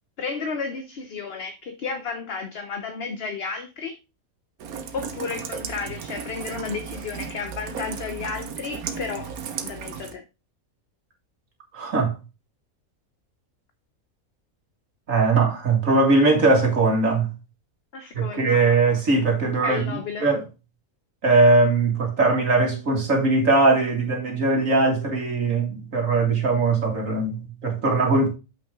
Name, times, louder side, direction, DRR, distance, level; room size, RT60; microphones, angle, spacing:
voice 1, 0.2-4.0 4.9-10.2 17.9-18.6 19.6-20.3, left 5 dB, 50° left, 0.9 m, -32 dB
Rain, 4.6-10.1, right 6 dB, 90° right, 1.4 m, -35 dB
voice 2, 11.7-12.1 15.1-17.3 18.1-19.8 20.2-20.4 21.2-28.3, right 3 dB, 65° right, 2.5 m, -20 dB
7.1 x 5.9 x 3.6 m
omnidirectional pair, 1.5 m